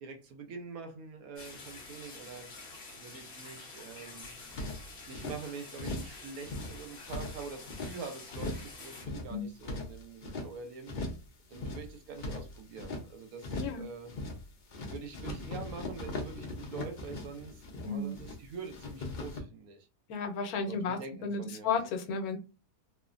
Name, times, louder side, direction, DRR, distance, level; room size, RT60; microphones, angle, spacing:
voice 1, 0.0-4.3 5.0-10.9 11.5-14.1 14.8-19.9 20.6-21.7, right 5 dB, 75° right, 1.1 m, -45 dB
sound 1, 1.4-9.1, left 3 dB, 45° left, 0.8 m, -48 dB
sound 2, 4.2-5.4 5.7-6.2 6.4-8.0 8.3-8.7 9.0-10.5 10.8-11.3 11.5-13.0 13.4-13.8 14.1-14.5 14.7-18.4 18.6-19.4, left 2 dB, 65° left, 0.4 m, -39 dB
voice 2, 17.8-18.1 20.1-22.4, left 5 dB, 85° left, 1.1 m, -33 dB
3.2 x 2.0 x 2.4 m
omnidirectional pair, 1.6 m